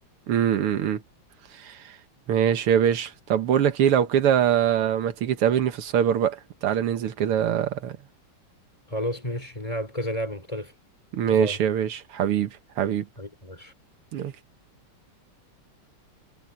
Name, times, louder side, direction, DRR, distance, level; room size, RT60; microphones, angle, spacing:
voice 1, 0.3-1.0 1.5-2.0 2.3-8.0 11.1-12.5 12.8-13.1 14.1-14.3, right 9 dB, 85° right, 2.1 m, -23 dB
voice 2, 8.9-10.7 11.3-11.6 13.2-13.7, equal, 15° left, 3.0 m, -31 dB
omnidirectional pair, 2.4 m